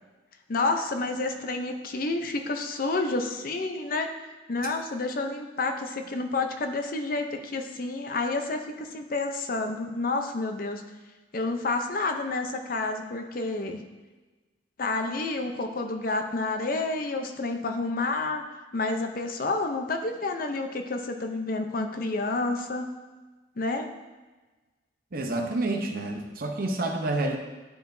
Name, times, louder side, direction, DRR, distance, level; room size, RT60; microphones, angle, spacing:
voice 1, 0.5-4.1 4.5-10.8 11.3-13.8 14.8-18.4 18.7-22.9 23.6-23.9, left 3 dB, 50° left, 5 dB, 0.6 m, -29 dB
voice 2, 25.1-27.4, right 2 dB, 55° right, 3 dB, 0.8 m, -28 dB
11.5 x 4.7 x 2.7 m, 1.3 s
head